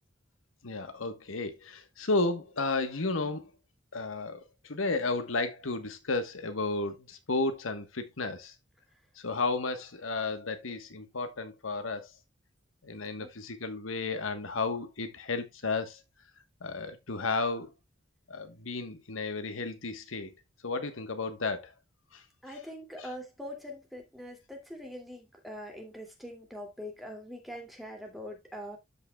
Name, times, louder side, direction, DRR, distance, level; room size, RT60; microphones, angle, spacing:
voice 1, 0.6-3.4 3.9-4.4 4.7-8.5 9.2-12.1 12.8-16.0 16.6-17.7 18.3-20.3 20.6-21.7 22.1-22.2 23.0-23.1, left 3 dB, 85° left, 1.3 m, -33 dB
voice 2, 22.4-28.8, equal, ahead, 2.5 m, -43 dB
13.5 x 5.6 x 2.3 m
head